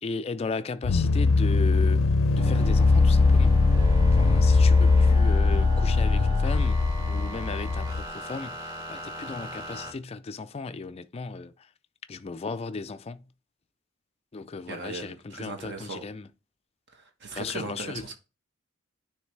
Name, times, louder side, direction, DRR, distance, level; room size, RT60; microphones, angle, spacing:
voice 1, 0.0-2.0 2.3-3.6 4.2-11.5 12.1-13.2 14.3-16.3 17.3-18.1, left 4 dB, 30° left, 0.4 m, -36 dB
sound 1, 0.8-8.1, left 3 dB, 85° left, 0.5 m, -21 dB
sound 2, 2.4-9.9, equal, 20° right, 2.0 m, -38 dB
voice 2, 14.7-16.0 16.9-18.1, right 3 dB, 55° right, 1.3 m, -38 dB
9.6 x 3.3 x 3.2 m
head